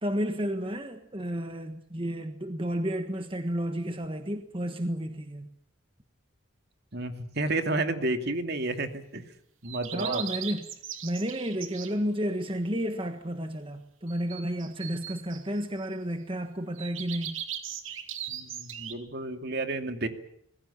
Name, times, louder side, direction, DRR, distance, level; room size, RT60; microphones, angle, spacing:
voice 1, 0.0-5.5 9.9-10.7 11.0-17.4, equal, 25° right, 7 dB, 1.5 m, -32 dB
voice 2, 6.9-9.2 9.6-10.2 18.3-20.1, right 2 dB, 50° right, 7 dB, 2.5 m, -31 dB
sound 1, 9.6-12.0 14.1-15.9 16.8-18.9, right 10 dB, 75° right, 2.9 m, -38 dB
26.0 x 21.0 x 7.2 m, 0.71 s
head